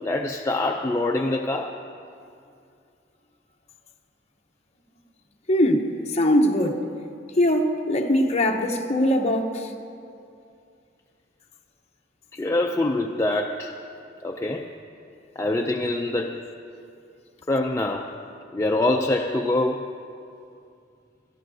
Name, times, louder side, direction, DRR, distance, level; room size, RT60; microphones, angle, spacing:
voice 1, 0.0-1.7 12.3-13.8 14.2-14.7 15.4-16.4 17.5-18.1 18.5-19.8, left 2 dB, 15° left, 0.4 m, -25 dB
voice 2, 5.5-6.9 7.3-9.7, left 1 dB, 35° left, 0.9 m, -21 dB
22.0 x 13.5 x 2.7 m
head